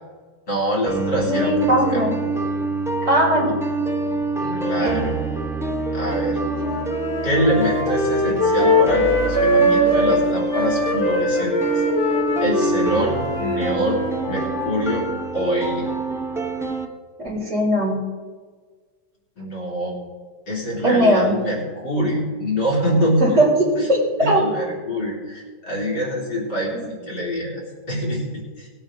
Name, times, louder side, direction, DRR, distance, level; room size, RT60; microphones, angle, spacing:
voice 1, 0.5-2.1 4.4-5.2 5.9-6.4 7.2-11.6 12.4-14.0 14.2-15.1 15.3-15.9 19.4-20.0 20.5-23.4 23.8-23.9 24.2-28.7, equal, 70° left, -3 dB, 3.7 m, -24 dB
sound 1, 0.9-16.9, right 2 dB, 5° right, 0.4 m, -26 dB
voice 2, 1.2-2.1 3.0-3.5 4.8-5.0 17.2-18.0 20.8-21.3 23.2-23.4 23.9-24.0 24.2-24.4 26.7-26.9, equal, 40° right, -4 dB, 4.1 m, -19 dB
sound 2, 6.4-10.2 10.5-14.9, left 1 dB, 30° left, 2.3 m, -22 dB
19.0 x 8.6 x 3.8 m, 1.5 s
omnidirectional pair, 1.9 m